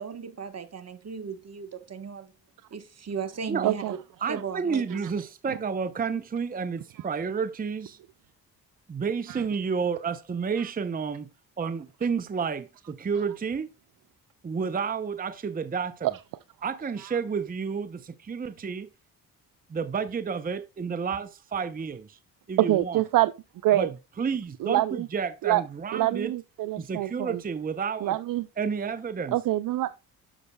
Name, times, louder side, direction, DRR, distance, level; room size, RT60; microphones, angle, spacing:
voice 1, 0.0-2.3 2.7-4.0 4.3-5.0, right 6 dB, 40° right, 1.2 m, -36 dB
voice 2, 3.6-3.9 9.3-9.4 16.0-16.1 22.6-23.3 23.6-23.9 24.6-25.1 25.4-25.6 25.9-27.4 28.0-28.5 29.3-29.9, right 15 dB, 60° right, 0.5 m, -25 dB
voice 3, 4.2-8.0 8.9-11.3 11.6-13.7 14.4-16.1 16.6-18.9 19.7-22.2 22.5-23.0 23.7-26.3 26.8-28.2 28.6-29.4, right 6 dB, 25° right, 0.6 m, -30 dB
9.9 x 6.4 x 2.3 m
supercardioid pair, 65°, 38 cm